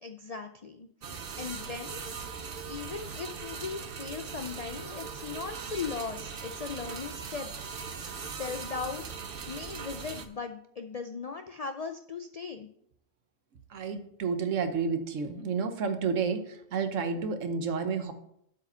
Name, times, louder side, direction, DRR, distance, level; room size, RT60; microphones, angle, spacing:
voice 1, 0.0-2.2 2.7-7.5 7.8-9.0 9.5-12.7, left 5 dB, 85° left, 6 dB, 0.3 m, -38 dB
sound 1, 1.0-10.3, right 5 dB, 50° right, 0.9 m, -40 dB
voice 2, 13.7-18.1, right 5 dB, 70° right, 8 dB, 1.3 m, -30 dB
7.8 x 5.0 x 6.8 m, 0.72 s
omnidirectional pair, 1.4 m